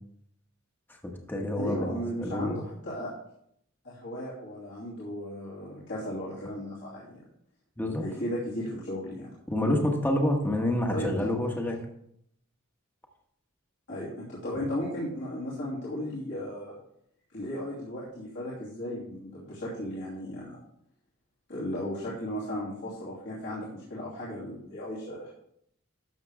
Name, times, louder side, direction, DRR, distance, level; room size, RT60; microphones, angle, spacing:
voice 1, 1.0-2.6 7.8-8.0 9.5-11.8 14.5-14.6, left 1 dB, 10° left, 1 dB, 1.3 m, -28 dB
voice 2, 1.6-3.1 3.8-7.2 8.0-9.3 10.9-11.3 13.9-16.8 17.3-20.6 21.5-25.3, equal, 60° left, -8 dB, 2.7 m, -35 dB
12.5 x 6.9 x 3.5 m, 0.72 s
head